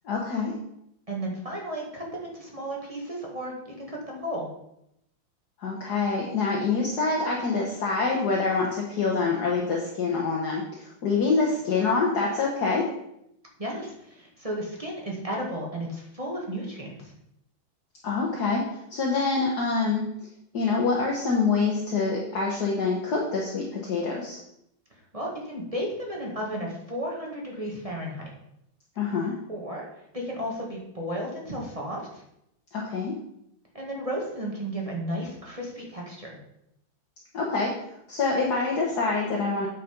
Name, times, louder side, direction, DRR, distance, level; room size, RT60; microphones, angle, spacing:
voice 1, 0.0-0.5 5.6-12.8 18.0-18.6 18.9-20.0 20.5-24.4 29.0-29.3 32.7-33.1 37.3-37.7 38.1-39.7, left 4 dB, 55° left, -2 dB, 1.7 m, -26 dB
voice 2, 1.1-4.5 13.6-17.1 25.1-28.3 29.5-29.8 30.1-32.2 33.7-36.4, equal, 20° right, -2 dB, 1.7 m, -33 dB
8.5 x 5.2 x 5.2 m, 0.78 s
omnidirectional pair, 2.2 m